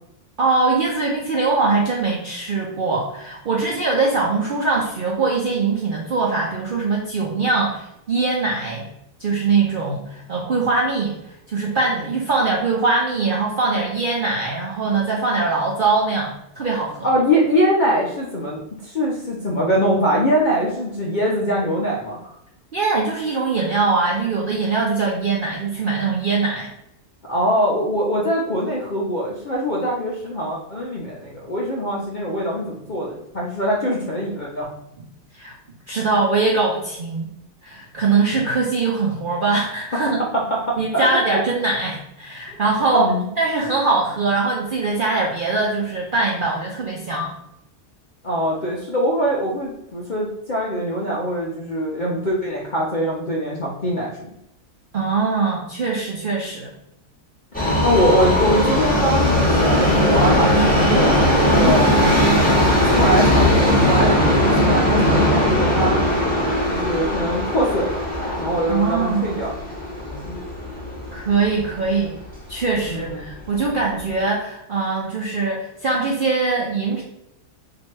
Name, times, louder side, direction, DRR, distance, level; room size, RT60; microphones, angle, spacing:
voice 1, 0.4-8.9 9.2-11.1 11.5-17.1 22.7-26.7 35.3-35.5 35.9-37.3 37.6-40.2 40.8-47.3 54.9-56.7 68.7-69.4 71.1-72.1 72.5-77.0, right 3 dB, 75° right, -3 dB, 0.4 m, -22 dB
voice 2, 17.0-22.4 27.3-34.7 39.9-41.4 42.9-43.3 48.2-54.1 57.8-61.8 62.5-64.2 64.6-66.0 66.7-68.1 68.3-69.6 70.0-70.4 72.9-73.3, equal, 70° left, -3 dB, 0.4 m, -23 dB
Subway metro underground, 57.5-71.7 72.0-72.1 72.9-73.0 73.3-73.4 74.0-74.1, left 1 dB, 5° left, 0.9 m, -18 dB
2.9 x 2.6 x 4.4 m, 0.80 s
omnidirectional pair, 1.6 m